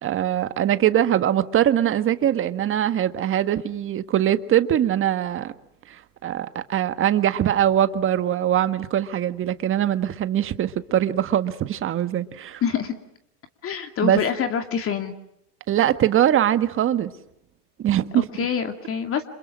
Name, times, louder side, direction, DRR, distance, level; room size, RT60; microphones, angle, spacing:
voice 1, 0.0-5.5 5.9-12.6 14.0-14.2 15.7-17.1 17.8-18.3, right 11 dB, 25° right, 1.6 m, -22 dB
voice 2, 12.6-12.9 13.6-15.1 18.1-19.2, left 7 dB, 25° left, 2.4 m, -26 dB
29.5 x 27.5 x 6.3 m
hypercardioid pair, 120°, 48 cm